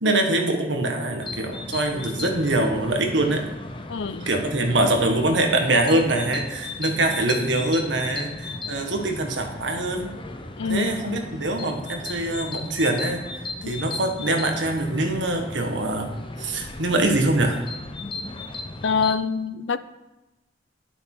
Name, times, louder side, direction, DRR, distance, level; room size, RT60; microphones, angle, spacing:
voice 1, 0.0-3.4 4.3-10.1 10.7-13.2 13.7-17.6, right 2 dB, 80° right, 3 dB, 1.6 m, -24 dB
sound 1, 1.2-19.1, left 3 dB, 30° left, 0.8 m, -36 dB
voice 2, 3.9-4.3 10.6-10.9 13.6-13.7 18.8-19.8, left 5 dB, 80° left, 13 dB, 0.6 m, -25 dB
10.5 x 6.8 x 6.1 m, 1.0 s
head